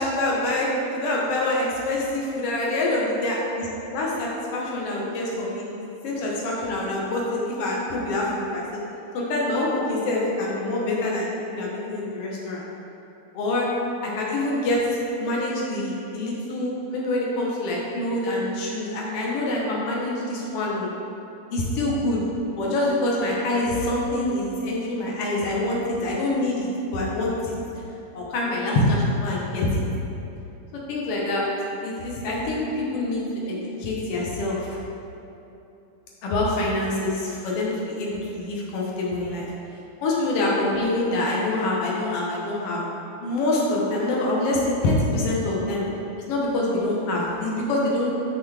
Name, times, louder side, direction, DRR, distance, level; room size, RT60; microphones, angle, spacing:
voice 1, 0.0-8.8 9.1-12.6 13.3-13.7 14.0-14.8 15.2-20.9 21.5-22.2 22.6-27.5 28.1-29.8 30.7-31.5 31.8-34.7 36.2-39.5 40.0-42.8 43.2-45.8 46.3-48.1, left 1 dB, 65° left, -4 dB, 1.5 m, -25 dB
6.9 x 6.8 x 3.4 m, 2.9 s
omnidirectional pair, 4.1 m